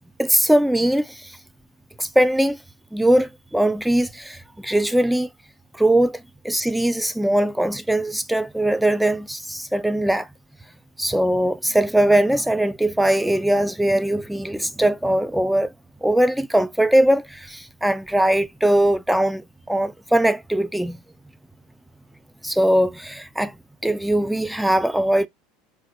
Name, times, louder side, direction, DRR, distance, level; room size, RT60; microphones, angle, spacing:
voice 1, 0.2-1.4 2.0-2.6 2.9-5.3 5.7-10.3 11.0-15.7 16.0-21.0 22.4-23.6 23.8-25.3, right 1 dB, 5° right, 0.5 m, -20 dB
4.7 x 4.0 x 2.6 m
supercardioid pair, 120°, 0 cm